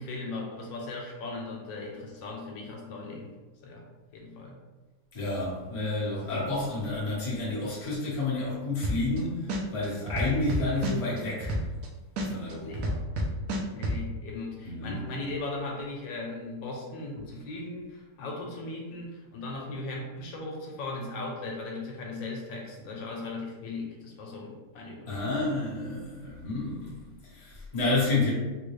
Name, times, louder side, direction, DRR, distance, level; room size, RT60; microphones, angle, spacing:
voice 1, 0.0-3.3 3.6-3.9 4.1-4.6 12.6-12.9 13.7-25.7, left 2 dB, 80° left, -1 dB, 1.4 m, -38 dB
voice 2, 5.1-11.5 12.2-13.0 14.6-15.0 25.1-27.0 27.3-28.3, left 2 dB, 25° left, -7 dB, 0.8 m, -30 dB
sound 1, 8.8-9.2 9.5-11.9 12.2-14.0, equal, 70° right, 0.9 m, -29 dB
3.8 x 2.2 x 3.1 m, 1.2 s
omnidirectional pair, 2.0 m